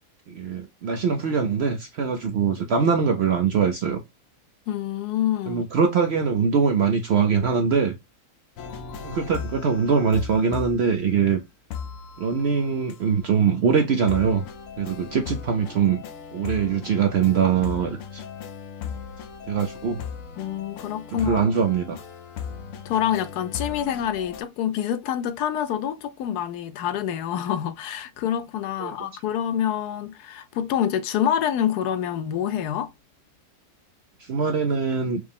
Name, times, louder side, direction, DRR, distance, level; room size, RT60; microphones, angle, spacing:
voice 1, 0.3-4.0 5.5-7.9 9.0-11.4 12.2-14.4 14.8-16.0 16.3-18.2 19.5-20.0 21.2-22.0 28.8-28.9 34.2-35.2, right 6 dB, 65° right, 0.6 m, -22 dB
voice 2, 4.7-5.6 20.4-21.5 22.8-32.9, left 10 dB, 90° left, 1.2 m, -26 dB
sound 1, 8.6-11.4 11.7-13.0 14.1-24.4, left 7 dB, 70° left, 0.9 m, -37 dB
4.7 x 2.1 x 3.3 m
omnidirectional pair, 1.6 m